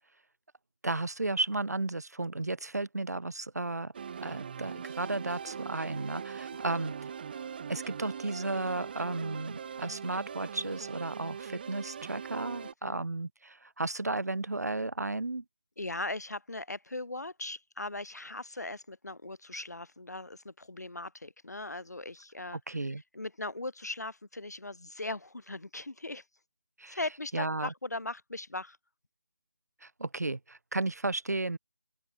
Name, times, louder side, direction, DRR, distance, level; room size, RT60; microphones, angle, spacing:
voice 1, 0.8-3.9 4.2-6.9 7.7-15.4 22.5-23.0 26.8-27.0 27.3-27.7 29.8-31.6, right 2 dB, 75° right, 1.5 m, -34 dB
sound 1, 3.9-12.7, right 7 dB, 35° right, 2.7 m, -41 dB
voice 2, 12.6-13.0 15.8-22.6 23.1-26.2 26.9-28.8, left 2 dB, 85° left, 1.6 m, -39 dB
open air
figure-of-eight pair, 160°, 9 cm